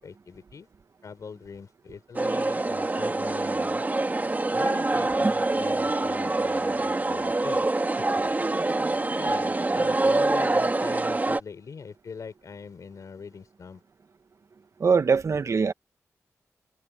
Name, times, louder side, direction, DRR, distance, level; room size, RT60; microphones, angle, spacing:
voice 1, 0.0-0.7 1.0-3.8 4.5-7.7 8.0-8.1 9.2-13.8, left 5 dB, 70° left, 4.2 m, -42 dB
sound 1, 2.1-11.4, right 2 dB, 30° right, 2.4 m, -25 dB
voice 2, 14.8-15.7, right 5 dB, 60° right, 1.1 m, -22 dB
cardioid pair, 75°, 6 cm